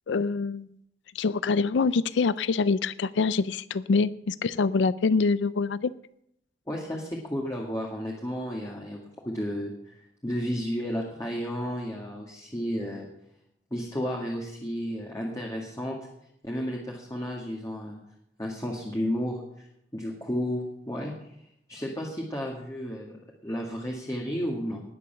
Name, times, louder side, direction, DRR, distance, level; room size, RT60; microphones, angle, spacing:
voice 1, 0.1-0.7 1.1-5.9, left 4 dB, 90° left, 16 dB, 0.4 m, -25 dB
voice 2, 6.7-9.0 9.2-13.1 13.7-16.0 16.4-18.0 18.4-19.7 19.9-21.3 21.7-23.2 23.4-24.8, equal, 20° left, -2 dB, 1.9 m, -32 dB
19.5 x 6.9 x 6.8 m, 0.75 s
head